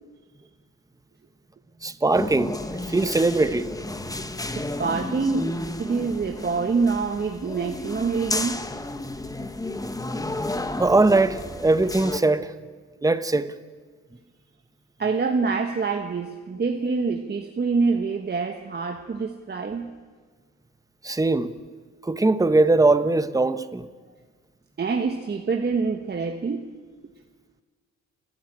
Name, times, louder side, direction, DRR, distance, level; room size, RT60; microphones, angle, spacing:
voice 1, 1.8-2.6 2.9-3.7 10.8-12.5 13.0-13.5 21.0-21.5 22.0-23.8, right 2 dB, 10° right, 1.0 m, -21 dB
sound 1, 2.1-12.2, left 2 dB, 10° left, 1.1 m, -32 dB
voice 2, 4.5-5.5 5.8-8.6 15.0-19.9 24.8-26.7, right 4 dB, 35° right, 1.3 m, -26 dB
30.0 x 10.5 x 8.9 m
cardioid pair, 90°, 30 cm